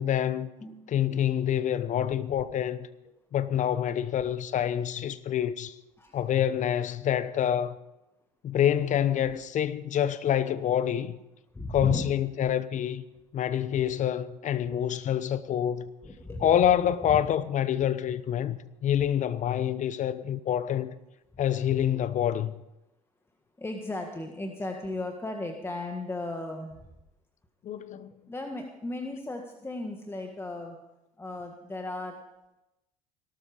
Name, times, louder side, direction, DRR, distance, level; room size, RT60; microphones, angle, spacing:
voice 1, 0.0-0.5 0.9-2.9 3.3-5.7 6.1-7.8 8.4-11.2 11.7-13.0 13.3-15.9 16.4-20.9 21.4-22.6 27.6-28.1, left 10 dB, 45° left, 0.9 m, -27 dB
voice 2, 0.6-0.9 6.0-6.2 11.5-12.1 14.6-14.8 16.0-16.5 17.1-17.3 23.6-26.8 28.3-30.8 31.2-32.2, left 1 dB, 15° left, 1.7 m, -36 dB
18.0 x 12.5 x 5.0 m
hypercardioid pair, 75°, 18 cm